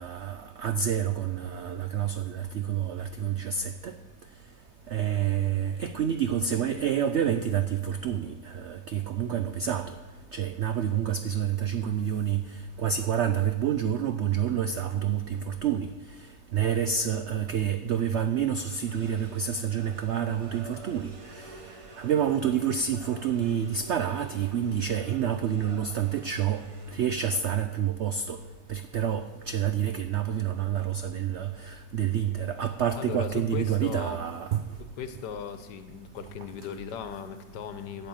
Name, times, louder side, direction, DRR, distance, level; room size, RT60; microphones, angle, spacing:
voice 1, 0.0-3.9 4.9-9.9 10.3-12.4 12.8-15.9 16.5-21.1 21.4-21.5 22.0-26.6 26.9-28.4 28.7-34.6, right 8 dB, 85° right, 10 dB, 0.6 m, -28 dB
sound 1, 18.6-27.4, right 3 dB, 30° right, 0.7 m, -49 dB
voice 2, 33.0-34.2 35.0-38.1, left 7 dB, 80° left, 9 dB, 1.5 m, -37 dB
9.0 x 8.5 x 7.8 m, 1.3 s
omnidirectional pair, 1.8 m